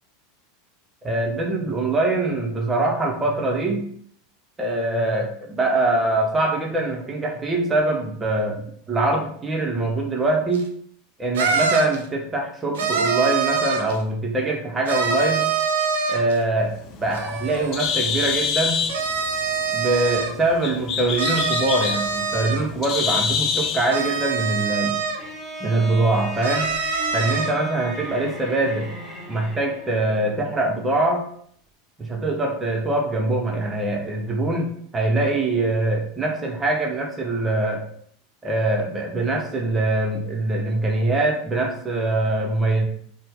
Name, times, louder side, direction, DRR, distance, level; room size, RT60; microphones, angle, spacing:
voice 1, 1.0-3.8 4.6-10.7 11.2-15.5 16.1-16.7 17.0-18.8 19.7-25.0 25.6-26.7 27.1-28.9 29.3-31.2 32.0-37.8 38.4-42.9, right 2 dB, 20° right, 1 dB, 0.7 m, -23 dB
sound 1, 10.5-10.6 11.3-12.0 12.7-14.0 14.9-16.4 17.1-17.8 18.8-20.3 21.2-22.6 23.9-25.2 26.4-27.5, right 5 dB, 70° right, 0.5 m, -24 dB
Bird, 16.7-24.0, left 6 dB, 45° left, 0.5 m, -27 dB
Bowed string instrument, 25.2-30.0, right 1 dB, 5° left, 1.3 m, -36 dB
4.0 x 2.1 x 3.5 m, 0.62 s
figure-of-eight pair, 85°, 0 cm